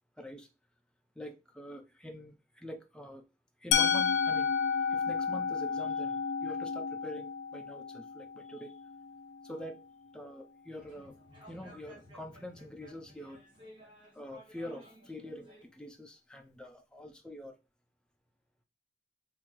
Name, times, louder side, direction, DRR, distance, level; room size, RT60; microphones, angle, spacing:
voice 1, 0.2-0.5 1.2-3.2 3.6-4.5 4.9-8.8 9.4-9.8 10.1-11.2 11.5-13.4 14.1-17.6, equal, 5° left, 5 dB, 0.4 m, -45 dB
Musical instrument, 3.7-9.6, left 6 dB, 70° left, 0.4 m, -31 dB
sound 1, 10.7-15.6, equal, 25° right, 1.0 m, -56 dB
3.6 x 2.6 x 2.9 m, 0.27 s
head